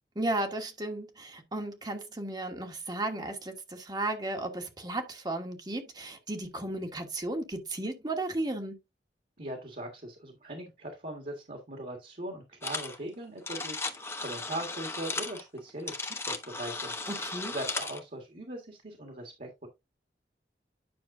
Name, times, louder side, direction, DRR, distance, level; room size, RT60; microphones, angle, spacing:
voice 1, 0.1-8.7 17.1-17.5, right 2 dB, 25° right, 1.3 m, -34 dB
voice 2, 9.4-16.9 17.5-19.7, right 1 dB, 50° right, 1.7 m, -40 dB
sound 1, 12.6-13.0 13.2-18.0, left 3 dB, 15° left, 0.9 m, -36 dB
9.7 x 6.0 x 2.6 m
head